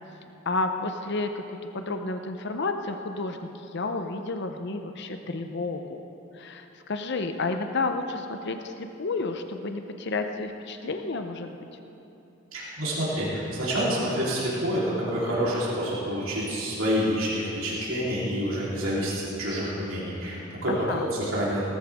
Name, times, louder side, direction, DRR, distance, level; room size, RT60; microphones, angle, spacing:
voice 1, 0.5-6.0 6.3-11.6 20.7-21.1, left 3 dB, 55° left, 6 dB, 0.7 m, -31 dB
voice 2, 12.5-20.7 21.1-21.6, equal, 85° right, -7 dB, 3.7 m, -28 dB
18.0 x 13.5 x 3.6 m, 2.9 s
head